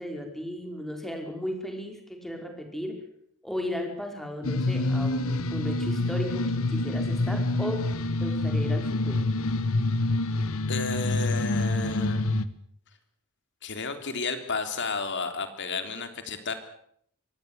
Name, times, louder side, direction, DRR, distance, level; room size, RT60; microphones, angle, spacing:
voice 1, 0.0-3.0 3.4-7.8 8.2-9.3, left 1 dB, ahead, 3 dB, 5.1 m, -35 dB
sound 1, 4.4-12.5, left 2 dB, 70° left, 1.4 m, -27 dB
voice 2, 10.7-12.3 13.6-16.5, left 4 dB, 55° left, 8 dB, 3.5 m, -32 dB
24.5 x 18.5 x 8.2 m, 0.68 s
head